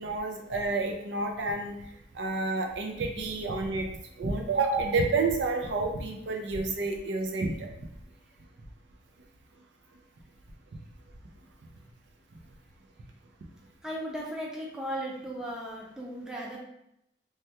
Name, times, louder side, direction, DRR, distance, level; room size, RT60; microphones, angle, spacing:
voice 1, 0.0-1.8 2.1-3.9 4.2-7.7, right 3 dB, 80° right, 3 dB, 0.5 m, -29 dB
voice 2, 13.8-16.6, equal, 5° right, -4 dB, 0.5 m, -36 dB
3.3 x 2.2 x 2.8 m, 0.78 s
head